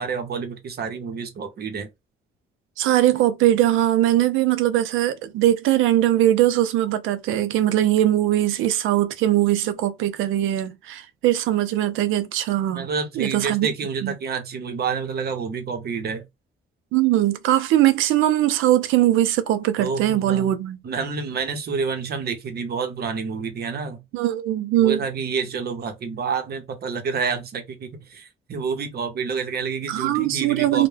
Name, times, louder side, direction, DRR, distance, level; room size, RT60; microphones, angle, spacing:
voice 1, 0.0-1.9 12.7-16.3 19.8-20.5 20.8-24.0 24.8-30.9, right 5 dB, 55° right, 0.7 m, -28 dB
voice 2, 2.8-12.9 13.2-13.7 14.0-14.1 16.9-20.8 24.1-25.0 29.9-30.9, right 13 dB, 85° right, 0.4 m, -20 dB
2.2 x 2.1 x 3.2 m
cardioid pair, 90°, 20 cm